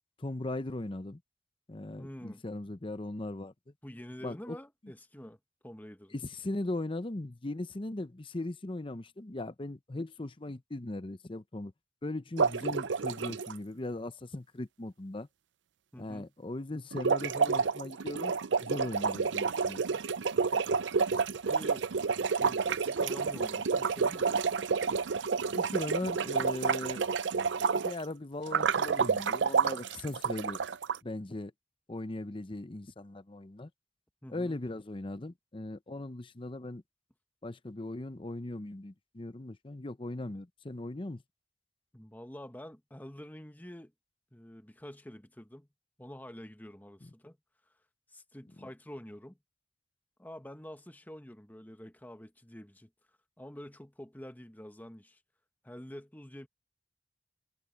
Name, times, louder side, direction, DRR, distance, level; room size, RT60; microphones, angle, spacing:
voice 1, 0.2-1.2 1.7-3.5 4.2-4.6 6.1-11.7 12.0-15.3 16.0-20.0 25.5-27.0 27.7-30.6 31.0-31.5 31.9-33.7 34.3-36.8 37.4-41.2, left 2 dB, 30° left, 0.7 m, -39 dB
voice 2, 2.0-2.4 3.8-5.4 5.6-6.1 15.9-16.3 21.3-21.9 22.2-24.4 34.2-34.6 41.9-43.9 44.3-45.7 46.0-47.4 48.1-49.4 50.2-52.9 53.4-55.2 55.6-56.5, equal, 10° left, 1.2 m, -47 dB
sound 1, 12.4-13.5 16.9-28.0 28.5-31.0, right 5 dB, 90° right, 0.5 m, -29 dB
head